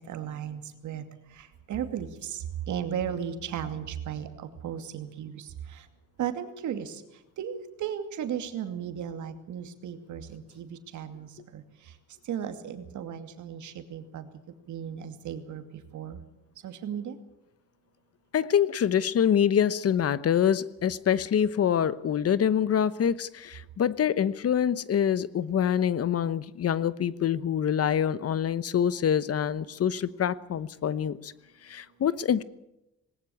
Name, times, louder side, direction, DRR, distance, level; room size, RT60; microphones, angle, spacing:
voice 1, 0.1-1.0 1.7-4.3 4.6-5.4 6.2-7.0 7.4-11.6 12.3-14.3 14.7-15.6 15.9-16.2 16.6-17.1, right 9 dB, 75° right, 8 dB, 2.5 m, -35 dB
voice 2, 18.3-31.3 31.6-32.4, left 9 dB, 50° left, 17 dB, 1.0 m, -25 dB
19.5 x 19.0 x 8.6 m, 0.89 s
cardioid pair, 90°, 30 cm